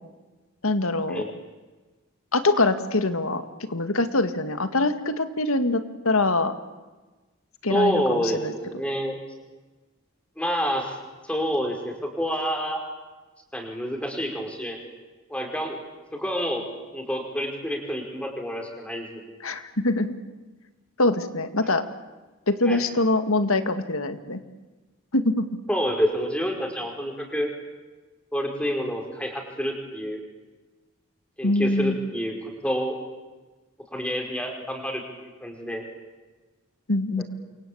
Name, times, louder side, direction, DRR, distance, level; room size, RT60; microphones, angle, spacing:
voice 1, 0.6-1.2 2.3-6.5 7.6-8.5 19.4-20.2 21.0-21.8 22.5-24.4 25.1-25.5 31.4-32.0 36.9-37.2, left 2 dB, 85° left, 10 dB, 2.1 m, -24 dB
voice 2, 7.7-9.2 10.4-11.0 11.3-12.8 13.5-14.8 15.3-15.8 16.1-16.6 16.9-19.2 22.7-22.8 25.7-27.5 28.3-30.2 31.4-32.3 32.6-33.0 33.9-35.0 35.4-35.8, equal, 5° left, 2 dB, 5.0 m, -28 dB
28.5 x 24.0 x 8.8 m, 1.2 s
head